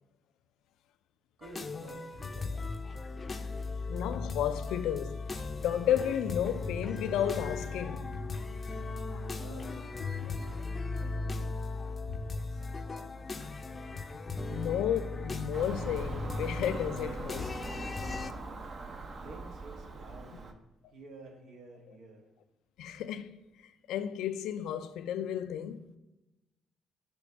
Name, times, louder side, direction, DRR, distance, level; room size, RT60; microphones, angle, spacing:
sound 1, 1.4-18.3, left 3 dB, 30° left, 0.5 m, -37 dB
voice 1, 1.4-3.2 9.3-11.6 12.3-13.2 19.2-20.6 20.9-22.2, right 2 dB, 85° right, 1.4 m, -52 dB
voice 2, 3.9-8.1 12.1-12.2 14.5-17.6 22.8-23.4 23.9-26.0, left 10 dB, 90° left, 0.4 m, -33 dB
Car passing by / Engine, 15.5-20.5, right 3 dB, 50° right, 0.7 m, -42 dB
6.1 x 3.3 x 5.8 m
cardioid pair, 90°, 0 cm